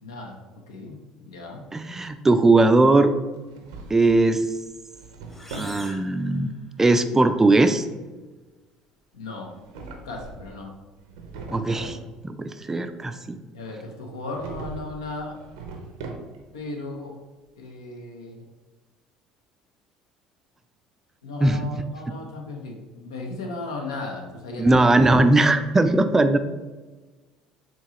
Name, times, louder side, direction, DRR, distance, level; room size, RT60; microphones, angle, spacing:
voice 1, 0.0-1.7 9.1-9.5 10.0-10.7 13.5-15.4 16.5-17.2 17.6-18.4 21.2-25.0, left 2 dB, 80° left, 1 dB, 0.7 m, -36 dB
voice 2, 1.7-3.1 3.9-4.5 5.5-6.5 6.8-7.9 11.5-12.0 12.2-13.4 21.4-21.6 24.6-26.4, right 2 dB, 20° right, 9 dB, 0.3 m, -19 dB
Drawer open or close, 3.3-4.3 4.7-5.8 9.4-10.6 11.0-12.1 14.3-15.0 15.3-16.6, right 3 dB, 75° right, 0.6 m, -39 dB
sound 1, 5.2-7.1, left 1 dB, 15° left, 0.8 m, -44 dB
4.6 x 2.9 x 2.9 m, 1.3 s
hypercardioid pair, 65°, 2 cm